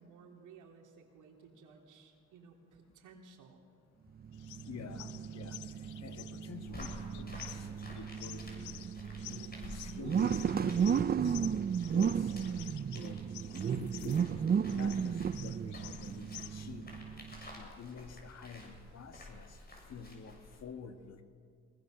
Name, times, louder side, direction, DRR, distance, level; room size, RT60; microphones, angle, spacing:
voice 1, 0.0-3.6, right 5 dB, 80° right, 2 dB, 3.5 m, -57 dB
sound 1, 4.2-17.5, right 7 dB, 30° right, 0.5 m, -34 dB
sound 2, 4.3-16.5, left 14 dB, 80° left, 0.7 m, -51 dB
voice 2, 4.7-8.7 9.3-14.2 14.7-17.0 17.6-19.6 19.9-21.2, left 5 dB, 60° left, 7 dB, 2.0 m, -49 dB
sound 3, 6.7-20.6, left 2 dB, 30° left, 7.0 m, -51 dB
22.5 x 21.0 x 6.7 m, 2.1 s
cardioid pair, 90°, 30 cm